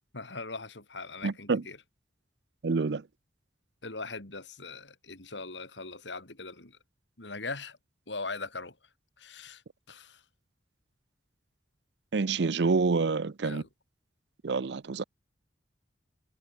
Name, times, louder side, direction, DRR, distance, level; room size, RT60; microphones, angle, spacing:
voice 1, 0.1-1.8 3.8-6.8 7.2-7.8 8.1-8.8 9.2-9.6 9.9-10.2 13.4-13.7, left 3 dB, 80° left, 4.3 m, -40 dB
voice 2, 1.2-1.6 2.6-3.0 12.1-13.6 14.4-15.0, right 4 dB, 65° right, 0.6 m, -27 dB
head